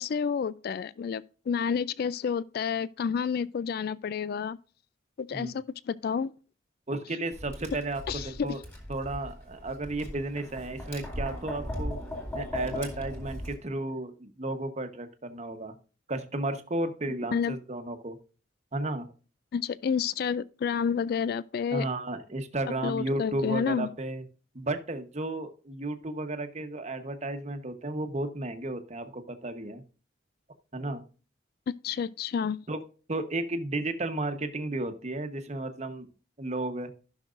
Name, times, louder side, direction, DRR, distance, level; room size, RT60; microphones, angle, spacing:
voice 1, 0.0-4.6 5.2-6.3 8.1-8.6 17.3-17.6 19.5-21.9 22.8-23.9 31.8-32.6, left 6 dB, 55° left, 0.3 m, -30 dB
voice 2, 6.9-8.6 8.9-12.0 12.3-15.7 16.1-18.2 18.7-19.1 21.7-24.2 24.5-29.8 30.7-31.0 32.7-32.8 33.1-36.1 36.4-36.9, right 2 dB, 35° right, 1.0 m, -33 dB
Tap, 7.3-13.5, left 1 dB, 15° left, 2.2 m, -38 dB
15.5 x 6.1 x 2.5 m
head